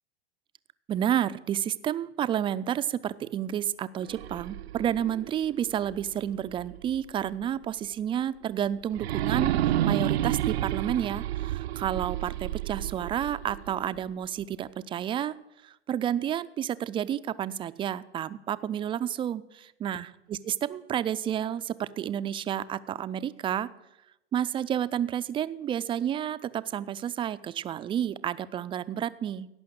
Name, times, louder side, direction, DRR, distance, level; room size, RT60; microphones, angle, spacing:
voice 1, 0.9-15.4 15.6-23.7 24.3-29.5, right 10 dB, 15° right, 13 dB, 0.3 m, -30 dB
sound 1, 4.0-7.0 7.4-7.5 8.9-14.0, right 12 dB, 80° right, 0.5 m, -30 dB
16.5 x 5.7 x 7.8 m, 0.89 s
hypercardioid pair, 110°, 31 cm